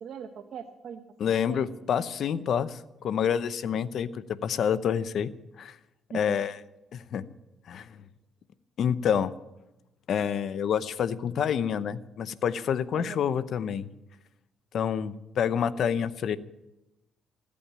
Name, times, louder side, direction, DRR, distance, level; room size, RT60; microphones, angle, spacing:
voice 1, 0.0-1.6 2.3-2.4 6.1-6.4 12.9-13.2, right 7 dB, 65° right, 4 dB, 1.0 m, -41 dB
voice 2, 1.2-5.3 5.6-5.8 6.1-6.6 6.9-7.2 7.7-8.0 8.8-9.3 10.1-13.9 14.7-16.4, left 8 dB, 65° left, 15 dB, 0.7 m, -28 dB
16.0 x 8.6 x 8.7 m, 0.96 s
cardioid pair, 90°, 0 cm